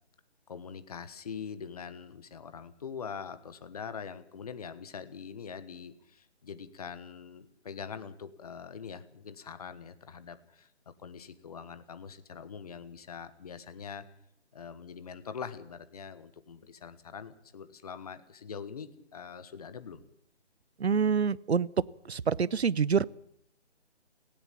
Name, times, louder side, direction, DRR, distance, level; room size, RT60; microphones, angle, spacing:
voice 1, 0.5-14.1 14.5-20.0, left 6 dB, 35° left, 12 dB, 1.3 m, -43 dB
voice 2, 20.8-21.7 22.0-23.0, right 6 dB, 65° right, 22 dB, 0.8 m, -26 dB
18.0 x 16.5 x 8.6 m, 0.67 s
figure-of-eight pair, 155°, 34 cm